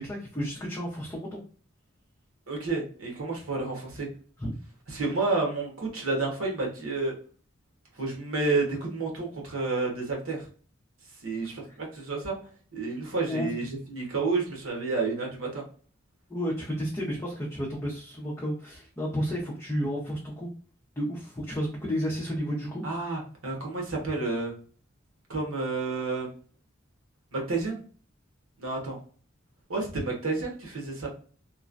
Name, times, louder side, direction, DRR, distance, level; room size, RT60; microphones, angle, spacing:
voice 1, 0.0-1.4 4.4-4.5 11.7-11.8 13.3-13.5 16.3-20.5 21.0-22.8, equal, 15° left, -5 dB, 0.6 m, -32 dB
voice 2, 2.5-4.1 4.9-7.1 8.0-10.4 11.2-12.4 12.7-15.6 22.8-24.5 25.3-26.3 27.3-27.8 28.6-29.0 29.7-31.1, right 3 dB, 90° right, 0 dB, 1.1 m, -30 dB
3.1 x 2.2 x 2.4 m, 0.43 s
head